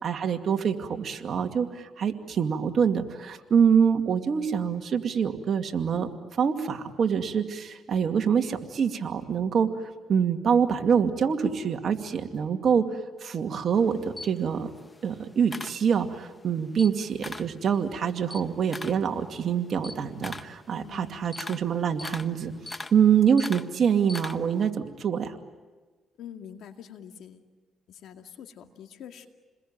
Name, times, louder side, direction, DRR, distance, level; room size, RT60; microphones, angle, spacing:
voice 1, 0.0-6.1 6.4-9.7 10.1-12.9 13.2-14.7 15.0-22.5 22.9-25.3, right 7 dB, 55° right, 5 dB, 2.4 m, -25 dB
Camera, 13.8-16.3 16.7-17.6 18.0-24.7, left 2 dB, 20° left, 1.2 m, -41 dB
voice 2, 20.7-21.3 26.2-27.5 27.9-29.3, left 9 dB, 75° left, 5 dB, 2.3 m, -45 dB
29.0 x 21.5 x 8.9 m, 1.3 s
cardioid pair, 90°, 0 cm